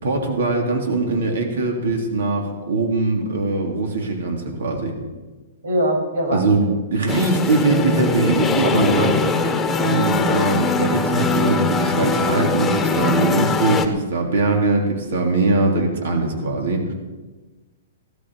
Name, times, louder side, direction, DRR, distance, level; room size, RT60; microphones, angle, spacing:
voice 1, 0.0-4.9 6.3-9.2 9.8-16.8, right 3 dB, 75° right, 2 dB, 3.3 m, -21 dB
voice 2, 5.6-6.7 8.6-8.9, right 1 dB, 90° right, 2 dB, 6.2 m, -23 dB
sound 1, 7.1-13.9, left 4 dB, 10° left, 1.3 m, -21 dB
17.0 x 13.0 x 4.8 m, 1.2 s
hypercardioid pair, 145°, 0 cm